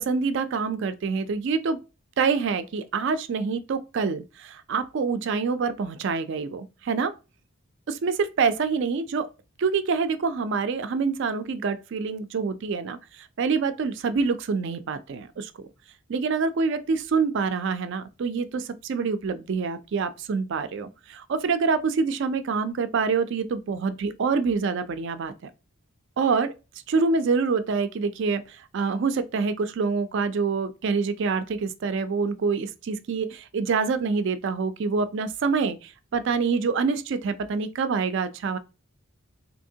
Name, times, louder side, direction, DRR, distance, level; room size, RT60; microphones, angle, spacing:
voice 1, 0.0-1.8 2.2-7.1 7.9-9.3 9.6-15.5 16.1-25.3 26.2-26.5 26.9-38.6, right 5 dB, 55° right, 0.3 m, -26 dB
3.5 x 2.8 x 2.7 m
head